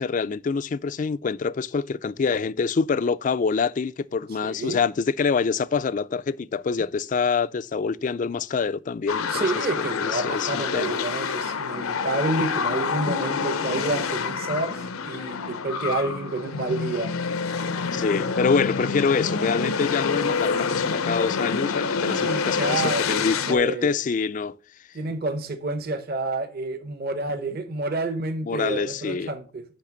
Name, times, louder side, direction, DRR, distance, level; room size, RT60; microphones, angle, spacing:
voice 1, 0.0-9.4 9.8-11.0 13.1-13.2 17.9-24.5 28.4-29.3, left 5 dB, 35° left, 0.3 m, -25 dB
voice 2, 4.4-4.8 9.3-17.3 22.0-24.0 24.9-29.6, right 2 dB, 45° right, 0.8 m, -29 dB
sound 1, 9.1-23.5, left 5 dB, 80° left, 0.7 m, -27 dB
9.9 x 3.4 x 5.9 m
head